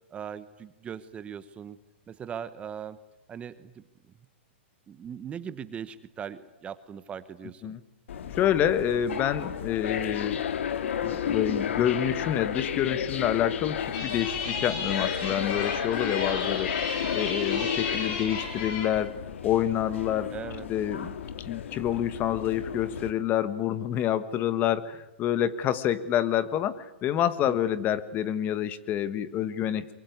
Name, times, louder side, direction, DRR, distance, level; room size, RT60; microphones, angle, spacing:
voice 1, 0.1-1.8 2.1-3.0 3.3-3.8 4.9-7.7 20.3-20.7 27.4-27.6, right 8 dB, 20° right, 14 dB, 1.0 m, -39 dB
sound 1, 8.1-23.1, left 8 dB, 75° left, 2.0 m, -33 dB
voice 2, 8.4-10.4 11.0-16.8 17.1-19.1 19.4-20.3 20.7-21.1 21.4-29.8, left 10 dB, 30° left, 15 dB, 1.4 m, -27 dB
sound 2, 13.9-18.9, left 4 dB, 45° left, 6.9 m, -34 dB
23.5 x 23.5 x 9.6 m, 0.93 s
hypercardioid pair, 140°, 7 cm